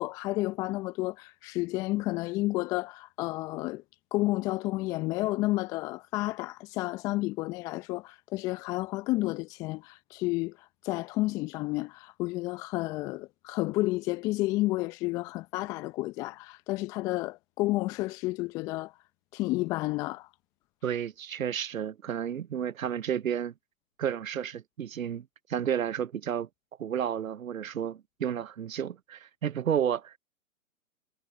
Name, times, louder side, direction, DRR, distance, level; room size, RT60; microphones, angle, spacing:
voice 1, 0.0-3.8 4.1-18.9 19.3-20.3, left 20 dB, 10° left, 0.6 m, -31 dB
voice 2, 20.8-23.5 24.0-26.5 26.8-30.2, right 9 dB, 65° right, 0.8 m, -31 dB
figure-of-eight pair, 125°, 44 cm